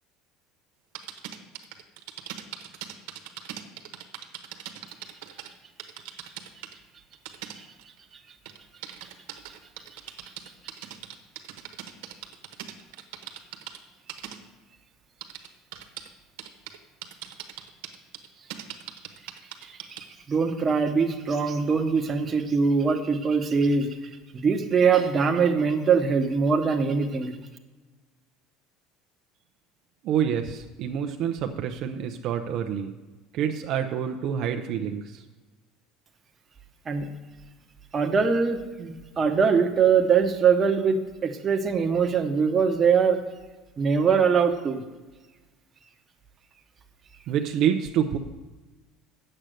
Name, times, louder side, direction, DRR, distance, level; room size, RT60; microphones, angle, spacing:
sound 1, 0.9-5.5 5.8-6.7 7.1-8.0 8.5-13.8 14.1-14.4 15.2-16.1 16.4-16.8 17.0-20.1, right 11 dB, 85° right, 1.2 m, -40 dB
voice 1, 20.3-23.9 24.3-27.4 36.9-37.1 37.9-43.2 43.8-44.8, right 5 dB, 25° right, 4 dB, 1.0 m, -22 dB
voice 2, 30.0-32.9 33.3-35.2 47.3-48.2, right 8 dB, 55° right, 5 dB, 0.6 m, -27 dB
8.8 x 7.7 x 6.5 m, 1.2 s
cardioid pair, 135°, 0 cm